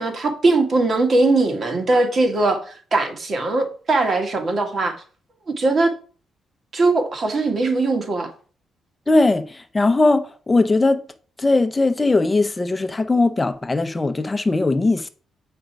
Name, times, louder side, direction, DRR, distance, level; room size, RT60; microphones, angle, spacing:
voice 1, 0.0-5.0 5.5-5.9 6.7-8.3, right 2 dB, 45° right, 1.8 m, -20 dB
voice 2, 9.1-11.0 11.4-15.1, left 2 dB, 20° left, 0.7 m, -19 dB
7.8 x 5.1 x 4.6 m
cardioid pair, 105°, 0 cm